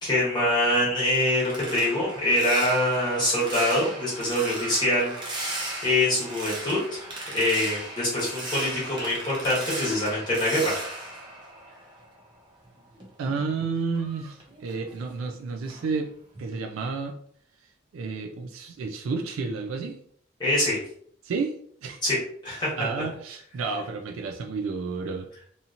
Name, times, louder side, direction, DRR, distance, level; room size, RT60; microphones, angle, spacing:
voice 1, 0.0-10.7 20.4-20.8 22.0-22.7, left 1 dB, 20° left, -7 dB, 1.0 m, -25 dB
sound 1, 0.8-12.3 12.7-15.3 15.7-16.0 16.4-16.6, right 1 dB, 25° right, 0.5 m, -37 dB
voice 2, 13.2-16.1 16.4-17.1 17.9-20.0 21.2-21.5 21.8-22.0 22.8-25.3, right 4 dB, 90° right, 4 dB, 0.3 m, -31 dB
2.8 x 2.6 x 2.5 m, 0.64 s
head